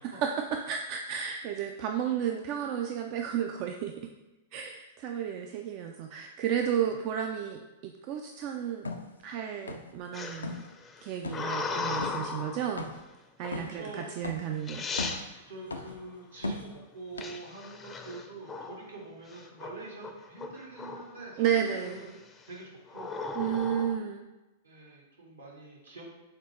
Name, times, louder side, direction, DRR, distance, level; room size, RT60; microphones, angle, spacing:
voice 1, 0.0-4.1 4.5-8.9 9.2-10.6 11.0-12.9 13.4-14.9 15.2-15.4 21.4-22.2 23.3-24.3, right 9 dB, 40° right, 4 dB, 0.3 m, -32 dB
sound 1, 8.8-9.1 9.7-10.0 10.3-10.7 11.2-11.5 12.0-12.2 12.8-13.1 13.5-13.8 14.2-14.5 14.9-15.3 15.7-16.0 16.4-16.8 17.2-17.3, left 2 dB, 80° left, 0.4 m, -36 dB
sound 2, 10.1-12.6 13.4-13.8 14.4-14.5 14.7-15.2 17.2-18.9 19.3-19.7 20.0-21.2 21.7-22.1 22.9-24.0, left 4 dB, 20° left, 0.5 m, -36 dB
voice 2, 13.5-14.0 15.3-22.1 22.4-23.1 24.6-26.0, right 3 dB, 75° right, -2 dB, 1.3 m, -45 dB
6.5 x 2.4 x 3.1 m, 1.1 s
figure-of-eight pair, 100°, 0 cm